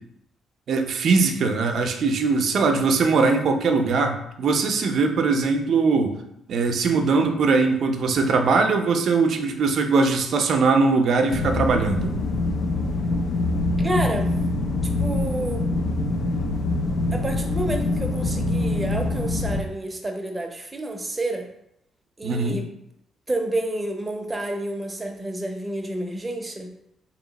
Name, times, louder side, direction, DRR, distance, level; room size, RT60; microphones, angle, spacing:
voice 1, 0.7-6.1 6.5-12.1 22.2-22.6, right 4 dB, 60° right, 5 dB, 0.5 m, -21 dB
voice 2, 3.0-3.3 13.8-14.3 15.0-15.6 17.1-21.5 22.2-22.6 23.3-26.7, right 1 dB, 20° right, 3 dB, 0.7 m, -29 dB
sound 1, 11.3-19.6, left 2 dB, 55° left, 0.5 m, -24 dB
3.0 x 2.9 x 4.0 m, 0.77 s
cardioid pair, 90°, 0 cm